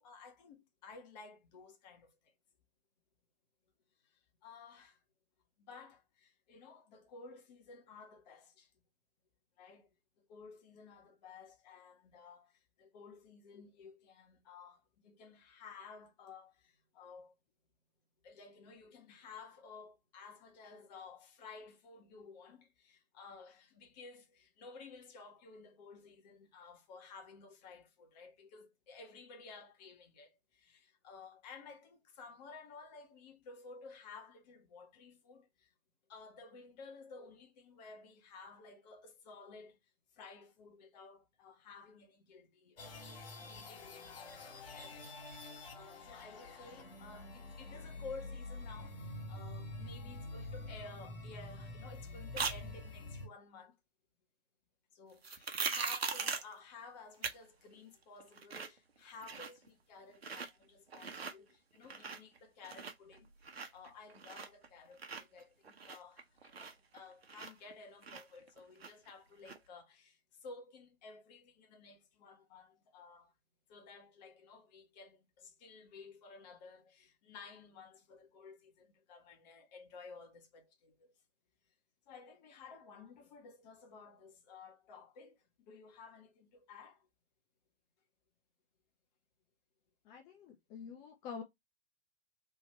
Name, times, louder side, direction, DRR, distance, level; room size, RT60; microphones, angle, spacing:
voice 1, 0.0-2.3 4.0-5.0 5.6-8.7 9.6-9.9 10.2-17.3 18.2-35.7 36.1-39.8 40.1-45.0 45.7-53.7 54.9-73.3 73.7-81.1 82.1-87.1, left 4 dB, 40° left, 1.5 m, -54 dB
sound 1, 42.8-53.3, left 2 dB, 60° left, 2.1 m, -47 dB
sound 2, 52.4-52.6 55.2-56.5 57.2-57.4 57.7-57.8 58.2-58.8 59.1-59.7 60.1-60.5 60.9-61.3 61.8-62.4 62.6-64.7 65.0-67.7 68.0-69.1 69.5-69.6, right 5 dB, 75° right, 1.0 m, -40 dB
voice 2, 90.1-91.4, left 6 dB, 15° left, 0.4 m, -47 dB
3.5 x 3.0 x 4.3 m
figure-of-eight pair, 115°, 31 cm